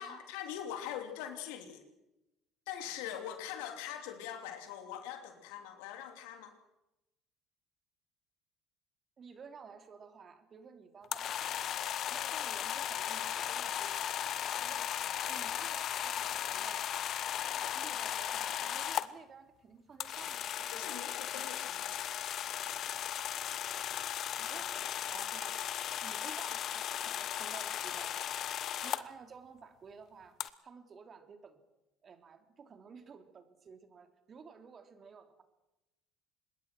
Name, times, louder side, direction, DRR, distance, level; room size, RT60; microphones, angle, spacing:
voice 1, 0.0-1.8 2.7-6.5 20.7-22.1, left 10 dB, 75° left, 7 dB, 3.0 m, -42 dB
voice 2, 9.2-11.7 12.1-16.9 17.5-20.5 20.7-21.4 24.4-25.6 26.0-28.5 28.8-30.4 30.6-31.6 32.0-35.4, right 5 dB, 40° right, 8 dB, 3.3 m, -53 dB
sound 1, 11.0-19.1 20.0-29.0 30.4-30.5, left 10 dB, 55° left, 1.1 m, -36 dB
25.0 x 21.5 x 6.2 m, 0.95 s
hypercardioid pair, 60°, 0 cm